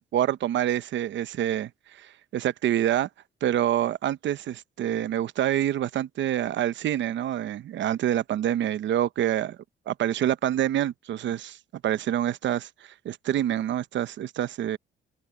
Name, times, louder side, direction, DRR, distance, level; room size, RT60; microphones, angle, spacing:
voice 1, 0.0-3.1 3.4-9.6 9.9-11.6 11.8-14.8, right 11 dB, 70° right, 0.8 m, -27 dB
open air
cardioid pair, 90°, 20 cm